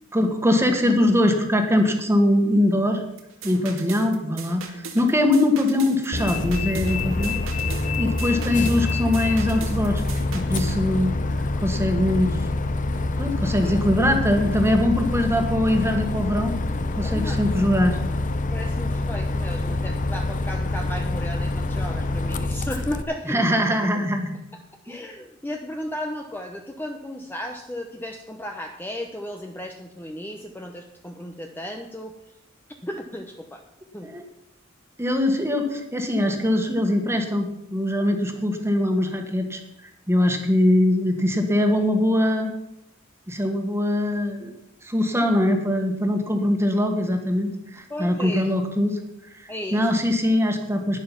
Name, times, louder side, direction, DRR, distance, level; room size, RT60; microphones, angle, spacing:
voice 1, 0.1-3.0 3.4-7.3 8.0-10.0 10.3-12.4 13.2-16.5 17.0-18.0 23.3-24.4 34.0-34.2 35.0-42.5 43.3-44.5 44.8-49.0 49.3-51.0, left 1 dB, 15° right, 4 dB, 1.7 m, -22 dB
sound 1, 3.2-10.8, right 5 dB, 80° right, 2.1 m, -39 dB
Bus, 6.1-23.0, left 2 dB, 40° left, 0.7 m, -26 dB
voice 2, 17.0-17.4 18.5-23.4 23.7-23.8 24.8-32.1 32.8-33.6 33.9-34.1 47.9-48.5 49.5-49.9, left 1 dB, 10° left, 3 dB, 0.8 m, -34 dB
11.5 x 10.0 x 5.9 m, 0.86 s
head